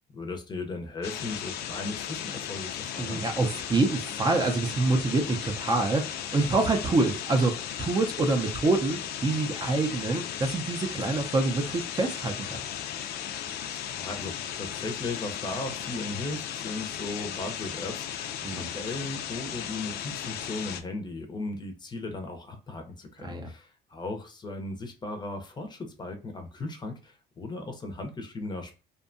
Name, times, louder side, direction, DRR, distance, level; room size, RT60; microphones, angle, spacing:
voice 1, 0.1-3.2 13.7-28.7, left 2 dB, 25° left, 0.6 m, -37 dB
sound 1, 1.0-20.8, left 9 dB, 70° left, 0.4 m, -36 dB
voice 2, 3.0-12.6 18.4-18.7 23.2-23.5, right 3 dB, 25° right, 0.4 m, -26 dB
2.6 x 2.2 x 2.5 m
cardioid pair, 110°, 17 cm